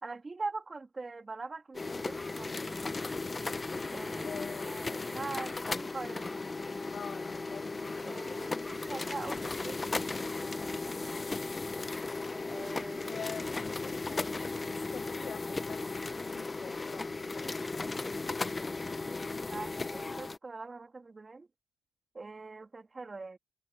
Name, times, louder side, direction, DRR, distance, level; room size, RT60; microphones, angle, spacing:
voice 1, 0.0-2.9 3.9-6.4 8.0-11.4 12.5-13.2 19.5-21.5 22.1-23.4, right 3 dB, 25° right, 3.0 m, -43 dB
sound 1, 1.7-20.4, left 3 dB, 25° left, 1.1 m, -36 dB
voice 2, 4.2-5.3 6.9-8.2 13.0-17.5, left 7 dB, 50° left, 5.4 m, -46 dB
sound 2, 5.6-16.9, left 10 dB, 70° left, 5.5 m, -63 dB
cardioid pair, 90°, 0 cm